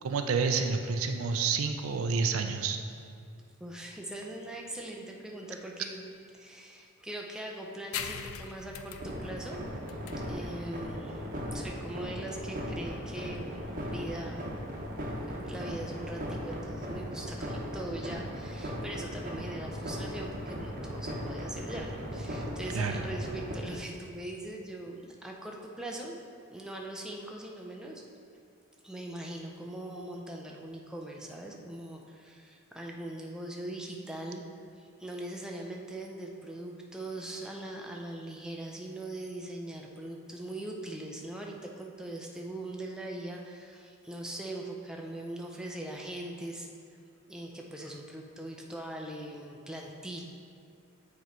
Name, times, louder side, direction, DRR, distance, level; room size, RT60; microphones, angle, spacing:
voice 1, 0.0-2.8 22.7-23.0, right 5 dB, 75° right, 6 dB, 0.4 m, -29 dB
voice 2, 3.6-6.1 6.3-9.6 10.3-11.2 11.5-14.4 15.3-26.2 26.5-28.0 28.8-34.4 34.8-46.7 47.3-50.2, right 1 dB, 5° right, -1 dB, 0.4 m, -41 dB
sound 1, 7.9-15.0, left 7 dB, 75° left, 0.4 m, -44 dB
sound 2, 9.0-23.5, equal, 40° right, 0.9 m, -37 dB
8.0 x 3.1 x 4.4 m, 2.4 s
head